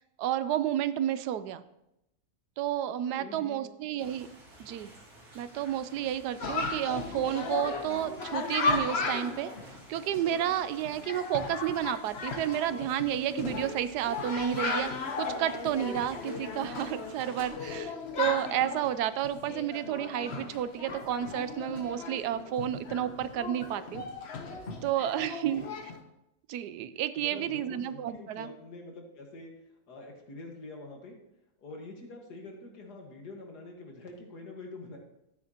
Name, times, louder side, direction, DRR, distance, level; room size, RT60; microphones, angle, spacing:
voice 1, 0.2-1.6 2.6-4.3 4.6-4.9 5.3-9.5 9.9-14.9 15.2-24.0 24.8-25.7 26.5-28.5, right 11 dB, 90° right, 14 dB, 1.2 m, -31 dB
voice 2, 3.1-3.6 25.2-25.7 27.2-29.5 29.9-31.2 31.6-35.0, left 2 dB, 85° left, 1 dB, 2.2 m, -45 dB
sound 1, 4.0-17.4, right 1 dB, 70° right, 2.9 m, -52 dB
Chatter, 6.4-26.0, left 4 dB, 45° left, 1.2 m, -36 dB
12.5 x 9.3 x 2.9 m, 0.85 s
omnidirectional pair, 1.7 m